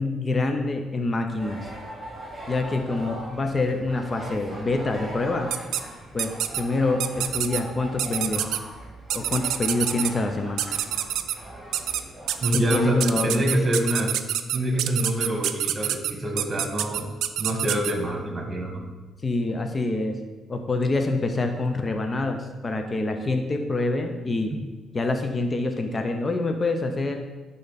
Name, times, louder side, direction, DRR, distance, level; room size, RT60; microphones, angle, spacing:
voice 1, 0.0-1.7 2.5-5.5 6.1-8.5 9.1-10.7 12.5-13.4 19.2-20.2 20.5-24.6 24.9-27.3, left 2 dB, 30° left, 5 dB, 0.7 m, -26 dB
sound 1, 1.4-13.2, right 1 dB, 15° right, 2.5 m, -40 dB
sound 2, 5.5-5.8 6.2-6.6 7.0-7.6 8.0-8.6 9.1-10.1 10.6-11.4 11.7-12.0 12.3-17.9, right 11 dB, 80° right, 0.4 m, -26 dB
voice 2, 12.4-14.2 14.5-17.1 17.4-18.9, equal, 30° right, 3 dB, 1.5 m, -26 dB
11.0 x 3.8 x 4.1 m, 1.2 s
cardioid pair, 90°, 0 cm